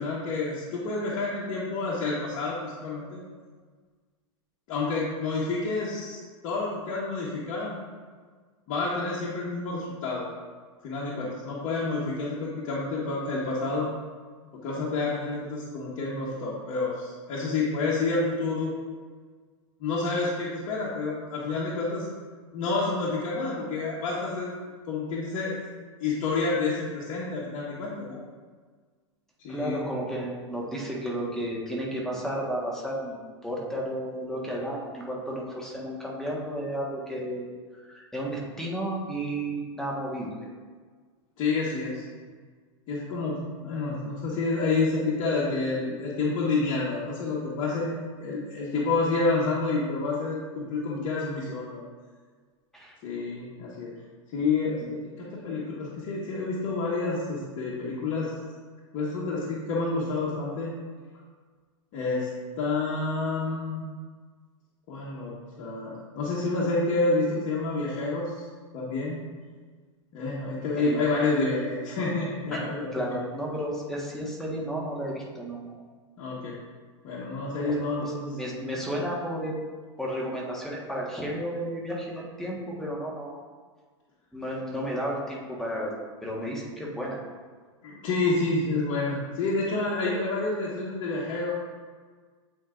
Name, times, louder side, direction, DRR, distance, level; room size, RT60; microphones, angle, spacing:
voice 1, 0.0-3.2 4.7-7.8 8.7-10.2 10.8-13.9 14.5-18.7 19.8-22.1 22.5-24.5 24.9-25.6 26.0-28.2 29.4-29.8 41.4-42.0 42.9-51.8 53.0-53.9 54.3-58.3 58.9-60.7 61.9-62.3 62.6-63.9 64.9-68.5 68.7-69.2 70.1-73.2 76.2-76.5 77.0-78.4 87.8-91.5, left 3 dB, 50° left, -7 dB, 1.3 m, -29 dB
voice 2, 29.5-37.5 37.9-40.3 52.7-52.9 54.8-54.9 70.8-71.0 72.5-72.6 72.9-75.7 77.6-79.6 80.0-83.4 84.3-85.9 86.2-87.2, right 1 dB, 5° left, -4 dB, 1.4 m, -33 dB
8.4 x 4.6 x 2.5 m, 1.5 s
hypercardioid pair, 105°, 17 cm